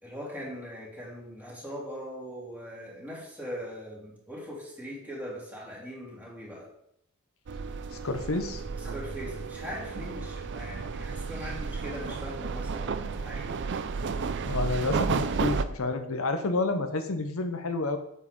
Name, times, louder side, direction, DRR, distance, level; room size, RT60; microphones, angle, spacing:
voice 1, 0.0-6.7 8.7-13.6, equal, 10° right, -5 dB, 3.1 m, -40 dB
sound 1, 7.5-15.6, right 4 dB, 55° right, 0.5 m, -32 dB
voice 2, 7.9-8.6 14.5-18.0, left 3 dB, 70° left, 7 dB, 0.8 m, -29 dB
8.3 x 7.4 x 3.7 m, 0.75 s
head